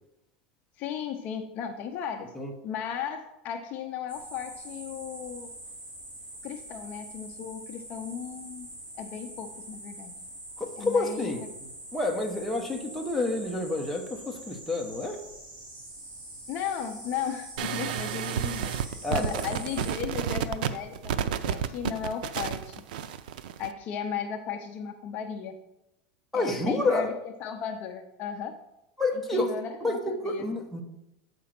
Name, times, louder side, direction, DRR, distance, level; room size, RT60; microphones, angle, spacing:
voice 1, 0.8-2.3 2.6-5.5 6.4-8.7 8.9-10.1 10.8-11.5 16.5-22.8 23.6-25.5 26.3-27.1 27.4-28.6 29.3-30.5, left 7 dB, 40° left, 5 dB, 0.6 m, -35 dB
sound 1, 4.1-19.9, right 1 dB, 30° right, 3.2 m, -44 dB
voice 2, 10.6-15.2 19.0-19.4 26.3-27.1 29.0-29.5 29.8-30.8, left 2 dB, ahead, -1 dB, 0.9 m, -29 dB
sound 2, 17.6-23.7, right 9 dB, 80° right, 0.5 m, -31 dB
7.5 x 5.1 x 5.8 m, 0.88 s
supercardioid pair, 160°, 5 cm